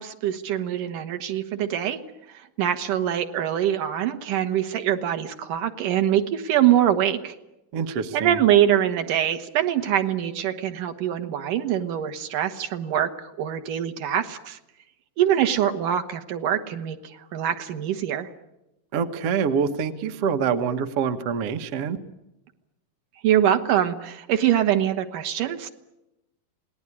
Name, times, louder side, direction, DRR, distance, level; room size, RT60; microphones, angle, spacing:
voice 1, 0.0-2.0 2.3-7.3 8.1-14.6 15.2-18.3 23.2-25.7, right 10 dB, 70° right, 7 dB, 2.9 m, -24 dB
voice 2, 7.7-8.4 18.9-22.0, right 6 dB, 55° right, 8 dB, 1.9 m, -25 dB
27.5 x 19.0 x 9.9 m, 0.93 s
omnidirectional pair, 3.9 m